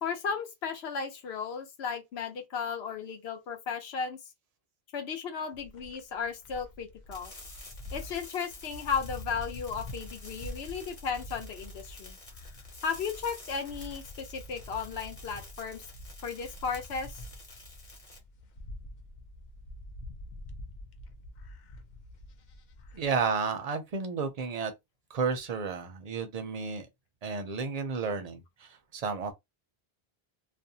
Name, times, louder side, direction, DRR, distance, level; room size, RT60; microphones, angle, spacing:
voice 1, 0.0-4.2 4.9-7.3 7.9-12.2 12.8-15.8 16.2-17.2, left 6 dB, 85° left, 0.9 m, -35 dB
sound 1, 5.5-23.1, left 1 dB, 55° left, 0.6 m, -46 dB
sound 2, 7.1-18.2, left 2 dB, 35° left, 1.0 m, -51 dB
voice 2, 22.9-24.7 25.1-26.9 27.2-29.3, right 5 dB, 50° right, 0.5 m, -32 dB
2.5 x 2.1 x 2.7 m
omnidirectional pair, 1.0 m